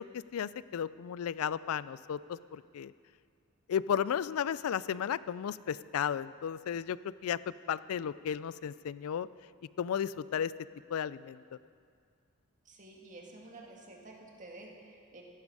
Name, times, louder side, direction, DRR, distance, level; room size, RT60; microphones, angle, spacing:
voice 1, 0.0-2.9 3.7-7.4 7.7-9.3 9.8-10.5 10.9-11.4, left 8 dB, 70° left, 18 dB, 0.3 m, -34 dB
voice 2, 12.6-15.2, right 2 dB, 35° right, 0 dB, 1.8 m, -50 dB
15.5 x 11.5 x 4.8 m, 2.1 s
head